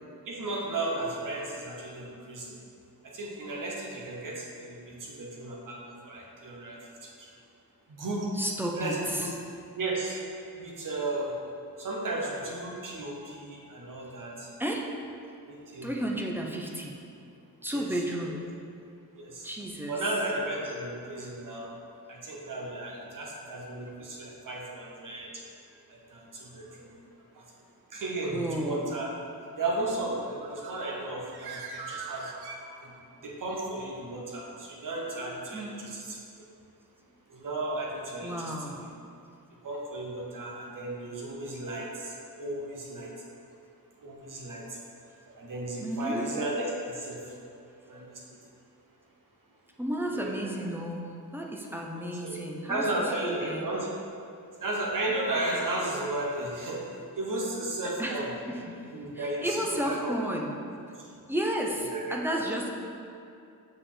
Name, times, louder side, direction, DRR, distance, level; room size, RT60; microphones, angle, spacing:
voice 1, 0.3-2.6 3.0-7.3 7.9-8.3 8.8-9.3 9.7-10.2 10.5-11.3 11.8-14.5 15.5-15.9 17.7-18.0 19.2-19.5 19.9-21.7 22.1-25.4 25.9-26.9 27.3-27.4 27.9-29.1 29.6-32.3 32.8-33.0 33.2-36.2 37.3-38.5 39.6-43.1 44.0-44.8 45.3-47.3 47.9-48.2 50.1-50.5 52.0-52.4 52.7-53.9 54.6-56.9 57.2-58.3 58.9-60.1 61.0-61.1 61.9-62.4, right 2 dB, 55° right, -2 dB, 1.1 m, -34 dB
voice 2, 8.3-9.3 14.6-14.9 15.8-16.9 17.6-18.3 19.4-19.9 21.2-21.3 28.2-28.9 35.5-35.9 38.2-38.8 45.8-46.3 49.8-53.7 58.0-58.9 59.1-60.6 61.3-62.7, right 1 dB, 5° right, -1 dB, 0.5 m, -32 dB
Bird, 30.2-33.2, right 4 dB, 90° right, 0.7 m, -42 dB
6.5 x 4.9 x 3.7 m, 2.5 s
wide cardioid pair, 170°, 37 cm